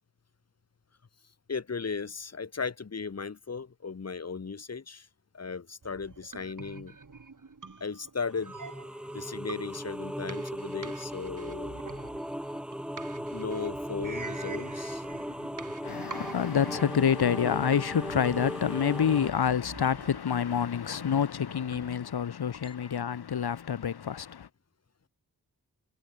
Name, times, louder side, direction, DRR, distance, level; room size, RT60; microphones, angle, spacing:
voice 1, 1.5-5.1 5.3-7.0 7.8-8.5 9.1-11.8 13.3-15.0 15.4-15.6 22.6-23.0, left 5 dB, 40° left, 1.3 m, -36 dB
sound 1, 5.8-22.0, right 4 dB, 55° right, 5.8 m, -47 dB
sound 2, 8.3-19.3, equal, ahead, 4.1 m, -37 dB
voice 2, 15.8-24.5, left 8 dB, 85° left, 1.2 m, -27 dB
wide cardioid pair, 95°, 38 cm